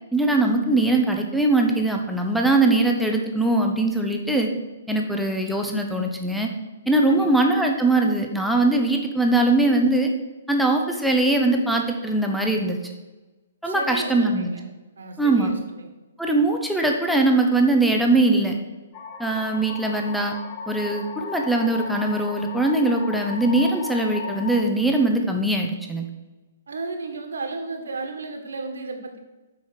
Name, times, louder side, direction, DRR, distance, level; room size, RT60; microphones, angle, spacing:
voice 1, 0.1-4.5 4.9-6.5 6.9-10.1 10.5-12.8 13.6-14.5 15.2-15.5 16.2-18.5 19.2-20.3 20.7-26.1, right 2 dB, ahead, 1 dB, 1.0 m, -21 dB
voice 2, 7.1-7.5 13.6-14.6 15.0-15.9 19.7-19.8 26.7-29.2, right 3 dB, 70° right, 5 dB, 1.6 m, -34 dB
sound 1, 18.9-24.6, left 4 dB, 35° left, 1.2 m, -36 dB
7.7 x 5.7 x 6.3 m, 1.1 s
figure-of-eight pair, 125°, 0 cm